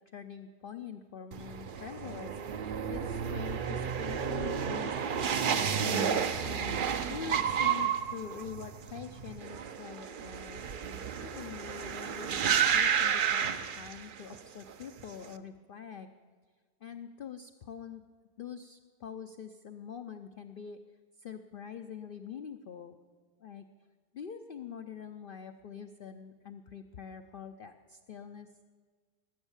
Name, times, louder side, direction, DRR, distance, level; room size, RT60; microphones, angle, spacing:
voice 1, 0.1-5.1 5.5-10.6 11.2-16.1 16.8-18.1 18.4-20.8 21.2-23.0 23.4-23.6 24.1-28.5, left 7 dB, 90° left, 7 dB, 0.4 m, -44 dB
sound 1, 1.3-14.4 14.7-15.3, right 7 dB, 75° right, 0.4 m, -31 dB
19.0 x 8.1 x 7.1 m, 1.5 s
omnidirectional pair, 1.7 m